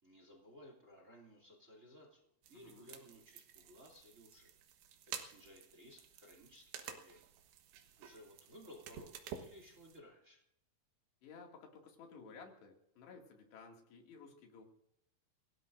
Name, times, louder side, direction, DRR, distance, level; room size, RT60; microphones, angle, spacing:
voice 1, 0.0-4.5 5.1-7.3 8.0-10.4, equal, 20° right, 1 dB, 2.5 m, -58 dB
sound 1, 2.4-10.0, right 8 dB, 75° right, 3.4 m, -52 dB
voice 2, 2.5-2.9 11.2-14.6, left 5 dB, 80° left, 1 dB, 4.5 m, -55 dB
29.5 x 17.5 x 2.6 m, 0.78 s
omnidirectional pair, 4.9 m